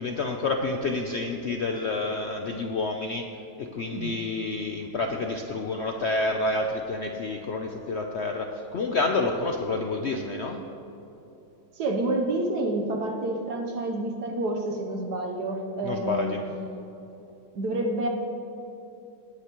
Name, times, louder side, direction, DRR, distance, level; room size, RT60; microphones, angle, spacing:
voice 1, 0.0-3.3 3.6-10.6 15.8-16.4, left 3 dB, 80° left, 3 dB, 0.6 m, -29 dB
voice 2, 11.7-16.5 17.5-18.1, right 2 dB, 65° right, 2 dB, 1.4 m, -29 dB
18.0 x 9.9 x 3.0 m, 3.0 s
omnidirectional pair, 1.9 m